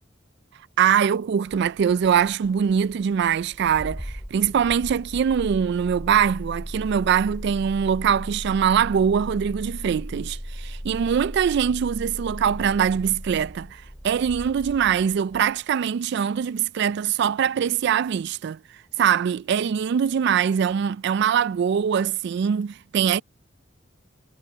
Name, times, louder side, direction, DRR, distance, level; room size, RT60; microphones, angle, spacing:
voice 1, 0.8-18.6 19.0-23.2, right 8 dB, 60° right, 0.3 m, -23 dB
Engine starting, 1.5-15.6, equal, 5° right, 2.2 m, -37 dB
head